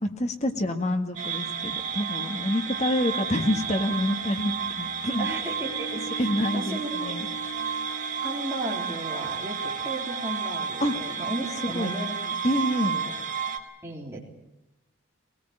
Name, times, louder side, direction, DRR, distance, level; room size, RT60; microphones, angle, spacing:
voice 1, 0.0-5.3 6.2-7.3 10.8-10.9 11.6-11.9 12.4-13.0, left 1 dB, 30° left, 6 dB, 1.7 m, -27 dB
sound 1, 1.2-13.6, right 6 dB, 40° right, 2.1 m, -32 dB
sound 2, 2.5-9.3, right 1 dB, 90° left, 2.0 m, -44 dB
voice 2, 5.2-6.2 6.5-7.1 8.2-12.3 12.8-13.1 13.8-14.2, right 1 dB, 10° right, -5 dB, 3.7 m, -35 dB
22.0 x 19.0 x 8.8 m, 0.92 s
head